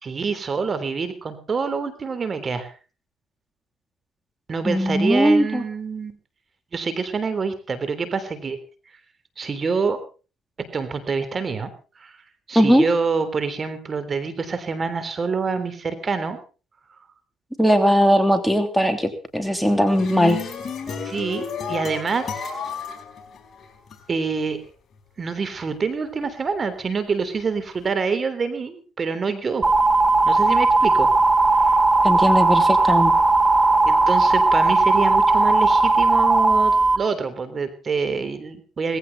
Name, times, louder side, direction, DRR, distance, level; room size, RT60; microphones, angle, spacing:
voice 1, 0.0-2.7 4.5-6.2 6.7-8.6 9.4-10.0 10.7-11.7 12.0-12.1 12.5-16.4 21.0-22.5 24.1-24.6 25.2-29.7 30.2-31.1 31.5-31.8 33.8-39.0, right 5 dB, 40° right, 12 dB, 3.4 m, -26 dB
voice 2, 4.6-5.6 12.5-12.8 17.6-20.4 32.0-33.1, equal, ahead, 6 dB, 3.1 m, -19 dB
sound 1, 19.7-24.0, left 6 dB, 45° left, 5.1 m, -31 dB
sound 2, 29.6-37.0, right 3 dB, 20° right, 3.6 m, -17 dB
19.0 x 16.0 x 4.1 m, 0.36 s
cardioid pair, 85°, 0 cm